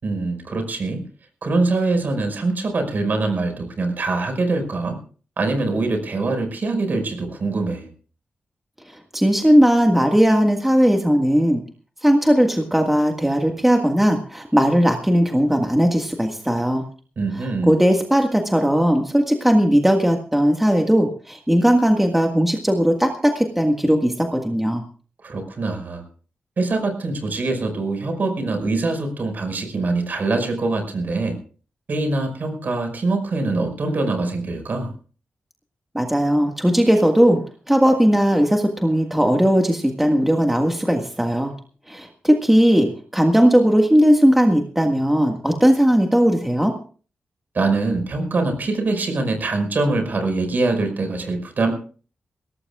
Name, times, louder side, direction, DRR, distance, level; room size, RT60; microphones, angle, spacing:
voice 1, 0.0-1.0 1.4-5.0 5.4-7.9 17.2-17.8 25.2-26.0 26.6-31.4 31.9-34.9 47.5-51.7, right 3 dB, 55° right, 6 dB, 5.4 m, -23 dB
voice 2, 9.1-11.6 12.0-16.8 17.3-24.8 35.9-41.5 41.9-46.7, equal, 5° right, 3 dB, 1.7 m, -18 dB
22.0 x 18.0 x 2.4 m, 0.39 s
wide cardioid pair, 105°, 4 cm